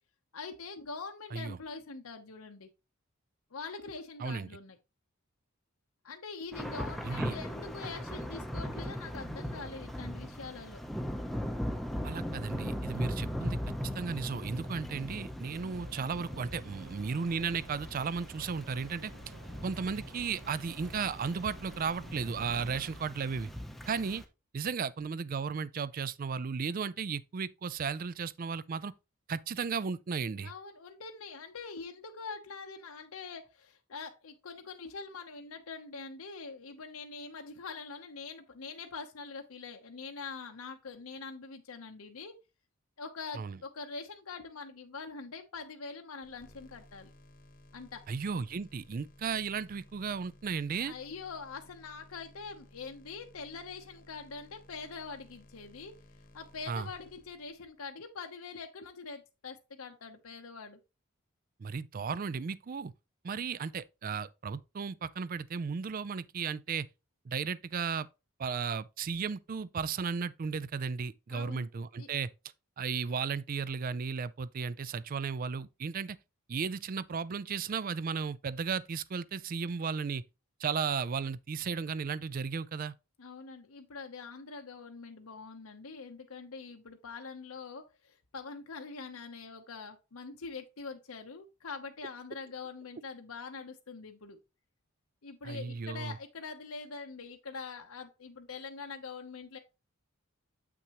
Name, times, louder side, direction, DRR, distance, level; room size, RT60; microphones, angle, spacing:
voice 1, 0.3-2.7 3.5-4.8 6.0-10.8 14.6-14.8 30.4-42.4 43.0-47.1 47.7-48.0 50.7-55.9 56.3-60.8 71.3-71.7 72.0-72.1 83.2-94.4 95.2-99.6, left 4 dB, 85° left, 0.8 m, -44 dB
Thunder / Rain, 6.5-24.2, equal, ahead, 0.7 m, -39 dB
voice 2, 7.0-7.3 12.0-13.6 13.9-19.1 19.6-23.5 23.9-24.2 24.5-28.9 29.3-30.5 43.4-43.6 48.1-50.9 56.7-56.9 61.6-62.9 63.2-66.9 67.3-68.1 68.4-72.3 72.8-76.2 76.5-80.2 80.6-82.9 95.4-96.2, right 5 dB, 40° right, 0.4 m, -35 dB
sound 1, 15.6-22.8, right 2 dB, 75° right, 1.1 m, -53 dB
sound 2, 46.2-57.9, left 1 dB, 40° left, 1.0 m, -58 dB
8.0 x 5.9 x 2.9 m
head